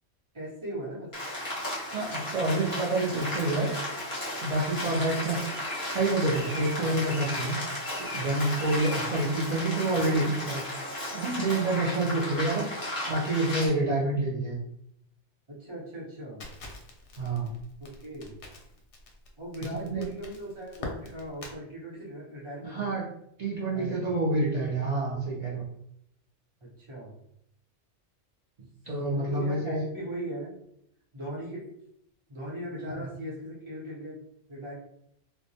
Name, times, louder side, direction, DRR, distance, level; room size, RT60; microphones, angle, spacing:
voice 1, 0.3-1.1 5.2-5.3 15.5-16.5 17.8-18.4 19.4-23.0 23.7-24.1 26.6-27.1 29.1-30.6 31.1-31.6 32.3-34.2 34.5-34.7, right 1 dB, 30° right, -6 dB, 0.7 m, -39 dB
Rain, 1.1-13.7, left 1 dB, 20° left, 0.8 m, -34 dB
voice 2, 1.9-3.7 4.4-5.6 5.9-7.6 8.0-10.6 10.9-14.6 17.2-17.5 19.8-20.1 22.6-23.0 23.4-25.7 28.9-29.8 32.9-33.1, right 2 dB, 70° right, -5 dB, 0.3 m, -28 dB
Crackle, 16.4-21.6, left 2 dB, 70° left, 0.8 m, -44 dB
2.2 x 2.1 x 2.7 m, 0.74 s
omnidirectional pair, 1.3 m